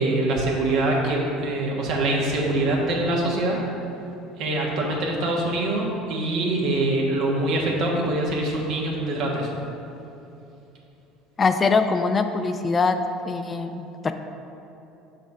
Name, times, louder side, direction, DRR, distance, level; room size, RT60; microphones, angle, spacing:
voice 1, 0.0-3.6 4.4-9.5, right 2 dB, 65° right, -2 dB, 1.3 m, -24 dB
voice 2, 11.4-13.0 13.3-14.1, left 4 dB, 30° left, 8 dB, 0.4 m, -22 dB
5.9 x 4.1 x 5.3 m, 2.8 s
hypercardioid pair, 75°, 0 cm